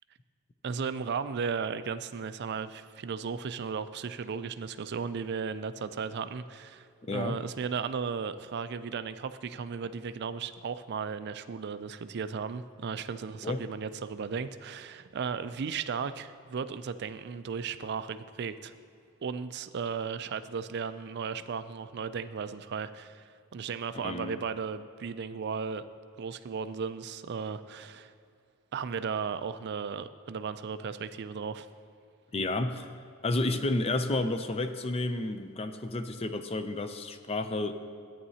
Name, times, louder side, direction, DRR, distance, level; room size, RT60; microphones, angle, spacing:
voice 1, 0.6-18.7 19.2-25.9 26.2-28.1 28.7-31.7, right 6 dB, 50° right, 12 dB, 0.4 m, -35 dB
voice 2, 7.0-7.4 13.4-13.6 24.0-24.4 32.3-32.9 33.2-37.7, left 2 dB, 30° left, 9 dB, 0.5 m, -31 dB
14.0 x 9.3 x 2.8 m, 2.4 s
head